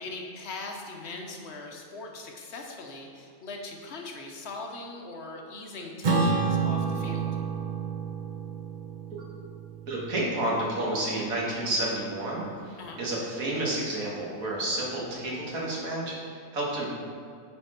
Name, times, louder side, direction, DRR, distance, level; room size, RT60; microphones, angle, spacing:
voice 1, 0.0-7.3 12.8-13.0, left 3 dB, 60° left, 1 dB, 1.0 m, -40 dB
Acoustic guitar / Strum, 6.0-10.8, right 5 dB, 40° right, 0.8 m, -29 dB
voice 2, 9.9-16.9, right 1 dB, 90° right, -4 dB, 2.0 m, -30 dB
9.0 x 4.4 x 4.3 m, 2.3 s
omnidirectional pair, 1.4 m